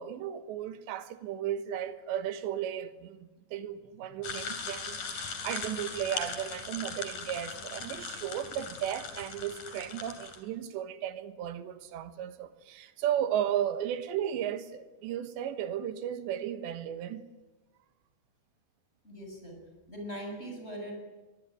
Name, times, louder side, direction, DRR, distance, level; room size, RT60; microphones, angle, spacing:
voice 1, 0.0-17.3, right 10 dB, 85° right, 3.6 m, -35 dB
sound 1, 4.2-10.4, left 5 dB, 50° left, 4.0 m, -39 dB
voice 2, 19.0-19.6 19.9-20.9, equal, 15° left, 7.1 m, -40 dB
23.5 x 20.5 x 9.5 m
omnidirectional pair, 4.9 m